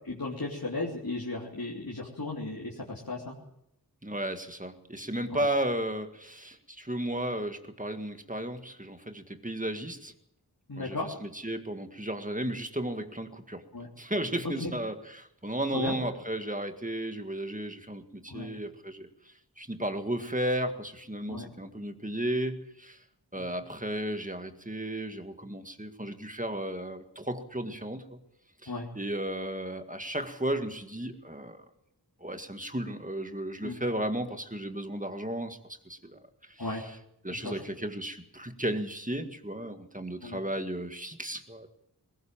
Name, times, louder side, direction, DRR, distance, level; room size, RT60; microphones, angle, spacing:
voice 1, 0.0-3.4 5.3-5.5 10.7-11.2 13.7-13.9 14.6-14.7 15.7-15.9 18.3-18.5 21.3-21.4 23.3-23.5 28.7-28.9 33.6-33.7 36.6-36.9 37.4-37.6 40.2-40.4, left 2 dB, 60° left, -3 dB, 3.1 m, -35 dB
voice 2, 4.0-10.1 10.7-13.6 14.0-23.0 23.3-28.2 28.6-31.6 32.2-35.6 35.9-36.2 36.5-37.0 37.2-41.7, right 1 dB, 20° right, 7 dB, 1.9 m, -34 dB
20.0 x 18.0 x 7.4 m, 0.78 s
wide cardioid pair, 40°, 40 cm